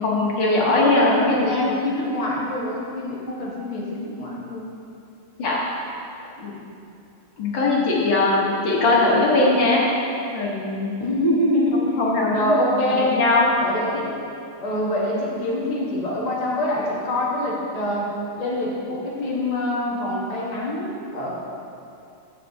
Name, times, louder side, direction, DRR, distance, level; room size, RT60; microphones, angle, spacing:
voice 1, 0.0-1.5 5.4-5.6 6.4-6.5 7.4-9.8 10.3-10.9 12.0-12.6 12.9-13.5, left 2 dB, 60° left, -4 dB, 1.9 m, -20 dB
voice 2, 0.6-4.7 11.0-12.0 12.3-13.2 13.6-14.2 14.6-18.1 18.4-21.3, left 1 dB, 25° left, -5 dB, 0.9 m, -25 dB
15.5 x 5.6 x 2.8 m, 2.7 s
omnidirectional pair, 2.4 m